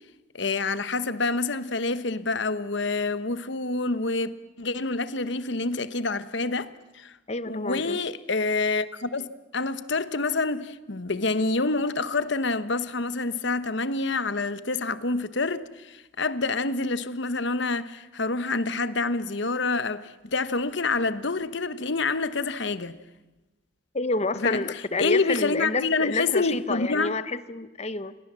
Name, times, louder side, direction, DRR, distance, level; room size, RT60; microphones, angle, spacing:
voice 1, 0.3-4.3 4.6-7.1 7.5-23.0 24.4-27.1, left 3 dB, 60° left, 1.1 m, -27 dB
voice 2, 7.3-8.0 23.9-28.2, left 3 dB, 30° left, 0.9 m, -29 dB
28.5 x 22.5 x 7.5 m
head